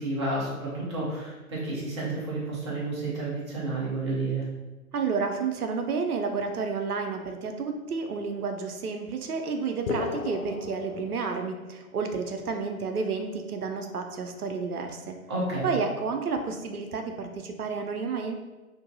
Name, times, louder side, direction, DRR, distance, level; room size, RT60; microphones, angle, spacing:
voice 1, 0.0-4.4 15.3-15.7, right 2 dB, 20° right, -6 dB, 0.5 m, -31 dB
voice 2, 4.9-15.2 15.6-18.3, right 5 dB, 80° right, 4 dB, 0.6 m, -31 dB
sound 1, 9.9-11.8, left 4 dB, 70° left, 0.5 m, -35 dB
3.7 x 2.5 x 2.6 m, 1.2 s
figure-of-eight pair, 130°, 44 cm